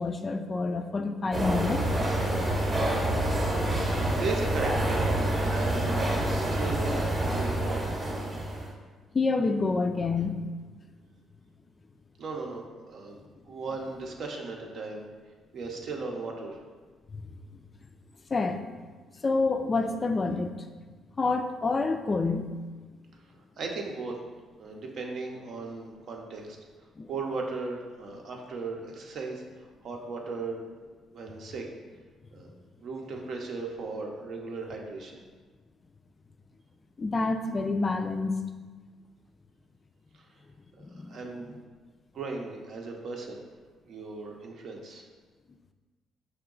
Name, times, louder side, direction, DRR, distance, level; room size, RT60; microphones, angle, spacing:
voice 1, 0.0-1.8 9.1-10.4 17.1-17.4 18.3-18.7 19.2-20.7 21.2-22.5 27.0-27.1 37.0-38.4 40.8-41.2, left 3 dB, 35° left, 7 dB, 0.3 m, -28 dB
sound 1, 1.3-8.7, right 1 dB, 25° right, 0.8 m, -27 dB
voice 2, 4.2-5.1 5.4-7.9 12.2-15.0 15.5-16.6 23.6-24.2 24.6-26.6 27.1-30.6 31.1-31.7 32.3-32.5 32.8-35.2 40.1-40.2 40.8-41.6 42.1-43.4 43.9-45.0, right 3 dB, 65° right, 1 dB, 0.6 m, -37 dB
4.7 x 2.2 x 3.7 m, 1.4 s
cardioid pair, 85°, 0 cm